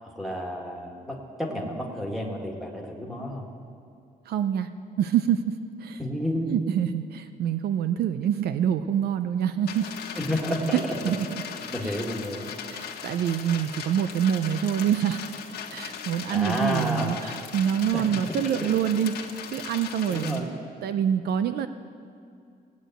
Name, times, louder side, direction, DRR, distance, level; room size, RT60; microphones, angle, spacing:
voice 1, 0.0-3.5 6.0-6.6 10.2-10.8 11.7-12.5 16.3-17.2 17.9-18.8 20.1-20.5, equal, ahead, -2 dB, 1.8 m, -31 dB
voice 2, 4.3-4.7 5.0-5.5 5.8-6.0 6.5-9.9 10.7-11.4 11.8-11.9 12.7-15.2 15.7-20.5 20.8-21.7, right 9 dB, 75° right, 11 dB, 0.5 m, -26 dB
sound 1, 9.7-20.4, left 7 dB, 85° left, 1.4 m, -38 dB
17.0 x 8.3 x 9.0 m, 2.3 s
cardioid pair, 180°, 16 cm